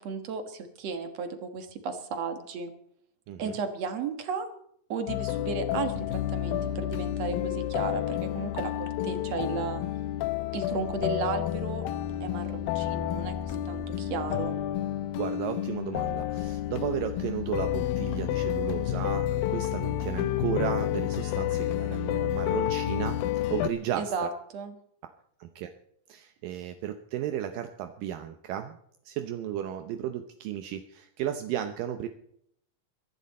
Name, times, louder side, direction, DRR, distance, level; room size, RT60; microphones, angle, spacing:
voice 1, 0.0-2.7 3.4-4.5 4.9-9.8 10.5-11.9 12.2-14.6 24.0-24.8, right 5 dB, 55° right, 8 dB, 2.2 m, -34 dB
sound 1, 5.1-23.7, left 12 dB, 85° left, 2.5 m, -30 dB
voice 2, 15.2-24.3 25.4-25.7 26.1-28.8 29.1-32.1, right 11 dB, 75° right, 7 dB, 2.4 m, -34 dB
22.5 x 11.0 x 4.2 m, 0.69 s
omnidirectional pair, 4.1 m